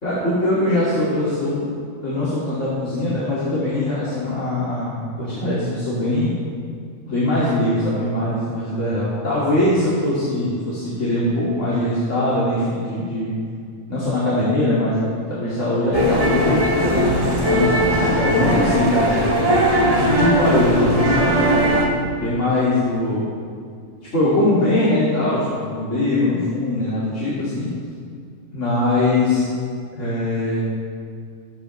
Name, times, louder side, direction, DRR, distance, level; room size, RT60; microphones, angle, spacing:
voice 1, 0.0-1.7 2.0-6.3 7.1-13.4 13.9-19.4 19.8-21.4 22.1-23.3 24.1-27.7 28.5-29.5 29.9-30.6, left 1 dB, 75° left, -10 dB, 2.8 m, -21 dB
sound 1, 15.9-21.9, right 1 dB, 30° right, 1.7 m, -19 dB
20.5 x 8.6 x 3.3 m, 2.2 s
omnidirectional pair, 1.3 m